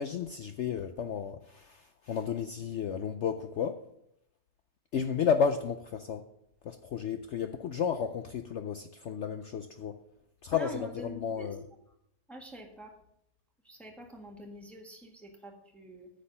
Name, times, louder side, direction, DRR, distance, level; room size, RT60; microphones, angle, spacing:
voice 1, 0.0-3.8 4.9-6.2 6.6-10.0 10.4-11.6, left 7 dB, 85° left, 8 dB, 0.6 m, -32 dB
voice 2, 10.5-11.6 12.3-12.9 13.6-16.1, equal, ahead, 0 dB, 1.5 m, -45 dB
9.6 x 6.6 x 6.6 m, 0.79 s
omnidirectional pair, 1.8 m